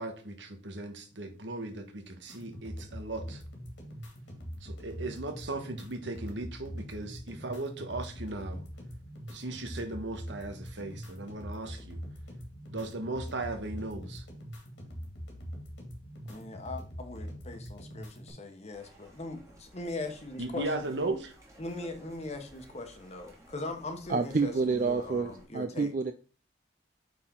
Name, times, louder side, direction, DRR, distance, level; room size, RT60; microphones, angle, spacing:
voice 1, 0.0-3.4 4.6-8.6 9.3-12.0 12.7-14.2 20.4-21.3, right 2 dB, 85° right, 1.3 m, -37 dB
sound 1, 2.3-18.3, equal, 80° left, 2.4 m, -43 dB
voice 2, 16.3-20.8 21.6-25.9, left 2 dB, 40° left, 1.2 m, -40 dB
sound 2, 18.7-25.5, right 1 dB, 15° right, 1.7 m, -56 dB
voice 3, 24.1-26.1, right 4 dB, 45° right, 0.4 m, -28 dB
8.6 x 4.3 x 3.7 m
head